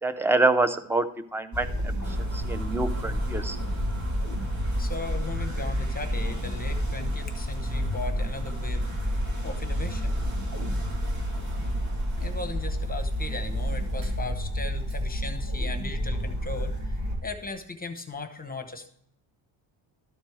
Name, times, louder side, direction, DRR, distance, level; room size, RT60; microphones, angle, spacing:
voice 1, 0.0-3.6, right 3 dB, 5° right, 12 dB, 0.4 m, -26 dB
sound 1, 1.5-17.2, equal, 35° right, 2.8 m, -29 dB
sound 2, 2.0-17.6, right 1 dB, 70° right, 3.0 m, -46 dB
voice 2, 4.8-8.9 9.4-10.2 12.2-16.9 17.2-18.9, left 3 dB, 20° left, 6 dB, 0.9 m, -37 dB
13.0 x 4.4 x 4.6 m, 0.68 s
cardioid pair, 120°, 49 cm